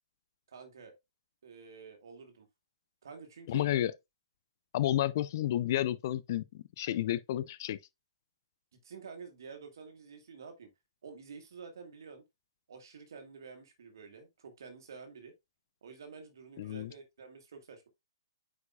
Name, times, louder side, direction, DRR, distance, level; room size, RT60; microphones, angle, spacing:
voice 1, 0.5-0.9 1.4-2.5 3.0-3.6 8.8-10.7 11.0-12.2 12.7-15.3 15.8-17.9, right 5 dB, 60° right, 1.8 m, -49 dB
voice 2, 3.5-3.9 4.7-7.8 16.6-16.9, left 13 dB, 45° left, 0.5 m, -31 dB
9.3 x 4.9 x 2.3 m
figure-of-eight pair, 125°, 2 cm